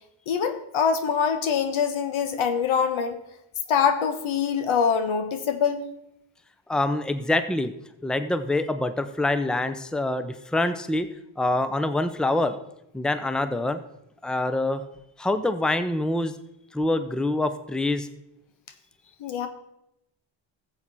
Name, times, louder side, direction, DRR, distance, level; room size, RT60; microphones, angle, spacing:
voice 1, 0.3-3.2 3.7-5.8 19.2-19.5, left 6 dB, 75° left, 9 dB, 1.4 m, -24 dB
voice 2, 6.7-7.7 8.0-11.1 11.4-12.5 12.9-13.8 14.2-14.8 15.2-16.3 16.7-18.1, left 2 dB, ahead, 10 dB, 0.8 m, -25 dB
14.5 x 7.8 x 4.2 m, 0.82 s
cardioid pair, 75°, 49 cm